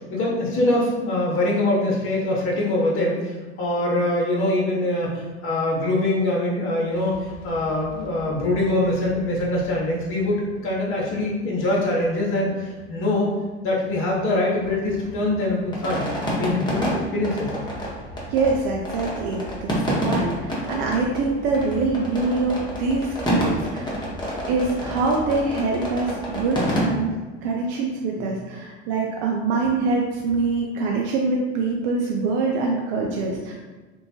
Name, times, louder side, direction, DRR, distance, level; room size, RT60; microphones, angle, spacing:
voice 1, 0.0-10.4 10.6-13.3 13.6-16.0 16.3-17.5 28.2-28.3 33.0-33.4, left 1 dB, 40° left, -3 dB, 0.8 m, -23 dB
sound 1, 6.9-11.4 11.7-11.8 12.0-12.2 12.4-13.5 13.8-26.8, equal, 15° left, 0.9 m, -30 dB
voice 2, 18.3-24.0 24.5-33.5, right 3 dB, 60° right, -1 dB, 0.5 m, -24 dB
3.0 x 2.2 x 2.7 m, 1.3 s
hypercardioid pair, 80°, 33 cm